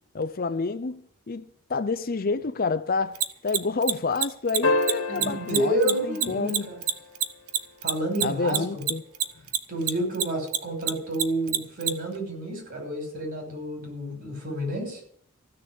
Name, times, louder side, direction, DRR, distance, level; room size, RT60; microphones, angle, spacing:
voice 1, 0.1-6.7 8.2-9.0, left 4 dB, 40° left, 0.5 m, -29 dB
Mechanisms, 3.1-9.9 10.1-11.9, right 11 dB, 90° right, 0.9 m, -24 dB
sound 1, 4.6-7.2 9.4-9.5, left 2 dB, 70° left, 1.9 m, -29 dB
voice 2, 5.1-6.8 7.8-8.8 9.7-15.0, right 1 dB, 45° right, 6.0 m, -29 dB
15.0 x 6.7 x 9.9 m
head